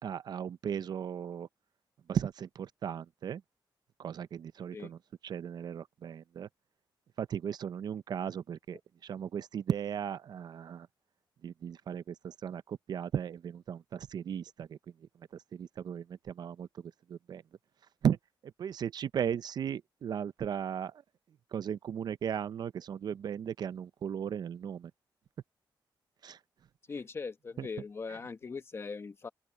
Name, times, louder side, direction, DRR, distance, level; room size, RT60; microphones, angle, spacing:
voice 1, 0.0-1.5 2.1-3.4 4.0-5.0 5.2-6.5 7.2-10.9 11.4-14.8 15.3-16.7 17.1-17.4 18.0-18.2 18.6-20.9 21.5-24.9 26.2-26.4 27.6-27.7, right 8 dB, 60° right, 0.5 m, -36 dB
voice 2, 26.9-29.3, left 4 dB, 30° left, 1.3 m, -40 dB
open air
wide cardioid pair, 150°, 8 cm